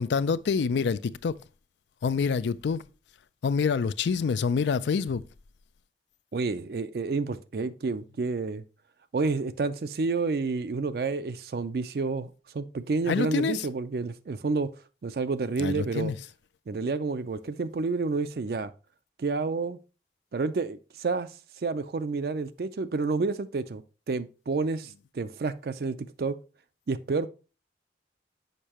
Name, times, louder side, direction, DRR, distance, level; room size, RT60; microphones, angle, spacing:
voice 1, 0.0-1.4 2.0-2.8 3.4-5.2 13.1-13.7 15.6-16.1, left 5 dB, 90° left, 0.4 m, -26 dB
voice 2, 6.3-8.6 9.1-14.7 15.0-16.1 16.7-18.7 19.2-19.8 20.3-21.3 21.6-23.8 24.1-26.4 26.9-27.3, right 4 dB, 60° right, 0.4 m, -29 dB
6.6 x 5.4 x 2.9 m
head